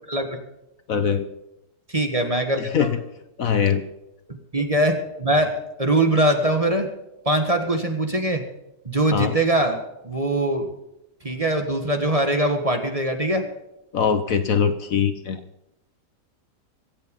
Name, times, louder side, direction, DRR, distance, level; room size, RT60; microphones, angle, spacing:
voice 1, 0.9-1.3 2.6-3.0 3.4-3.8 9.1-9.4 13.9-15.4, left 7 dB, 60° left, 10 dB, 1.2 m, -22 dB
voice 2, 1.9-2.9 4.5-6.9 7.2-8.4 8.8-9.8 10.0-10.7 11.2-13.4, right 1 dB, 20° right, 5 dB, 1.6 m, -22 dB
23.5 x 8.1 x 5.4 m, 0.89 s
omnidirectional pair, 1.8 m